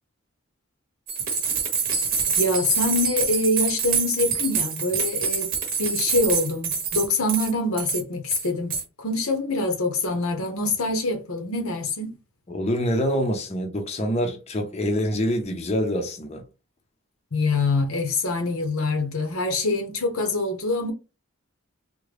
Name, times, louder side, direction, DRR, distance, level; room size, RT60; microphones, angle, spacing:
sound 1, 1.1-7.5 7.8-8.0 8.3-8.8, right 6 dB, 40° right, 0.8 m, -26 dB
voice 1, 2.4-5.5 5.8-8.7 9.0-12.1 17.3-20.9, left 2 dB, 85° left, 0.9 m, -25 dB
voice 2, 12.5-16.4, equal, 30° left, 0.6 m, -25 dB
3.7 x 2.2 x 3.2 m
head